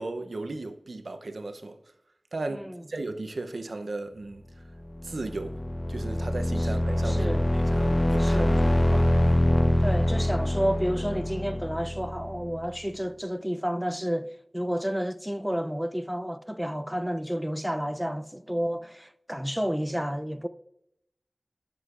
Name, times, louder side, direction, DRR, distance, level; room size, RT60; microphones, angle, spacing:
voice 1, 0.0-1.8 2.3-4.4 5.0-5.6 5.9-9.4, right 2 dB, 85° right, 0.6 m, -36 dB
voice 2, 2.5-2.8 6.6-6.7 7.0-7.4 8.2-8.6 9.8-20.5, equal, 5° right, 0.4 m, -30 dB
sound 1, 4.9-12.6, left 1 dB, 30° left, 0.7 m, -25 dB
12.0 x 6.3 x 2.4 m
wide cardioid pair, 50°, 0 cm